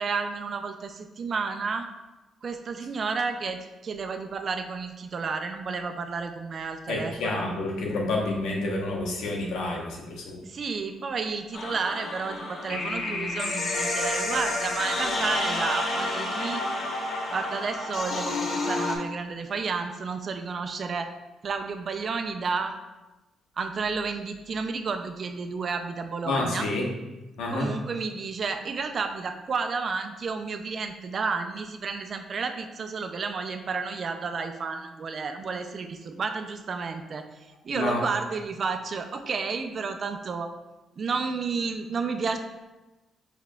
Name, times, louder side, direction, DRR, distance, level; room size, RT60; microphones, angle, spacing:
voice 1, 0.0-1.9 2.4-7.4 10.4-16.6 17.3-21.1 21.4-22.7 23.6-26.7 27.5-40.5 41.0-42.4, right 4 dB, 50° right, 7 dB, 0.4 m, -31 dB
voice 2, 6.9-10.4 26.2-26.9 27.4-27.7 37.7-38.1, left 2 dB, 85° left, -1 dB, 1.0 m, -29 dB
sound 1, 11.5-19.0, left 2 dB, 65° left, 1.2 m, -29 dB
4.7 x 4.3 x 2.4 m, 1.1 s
cardioid pair, 90°, 0 cm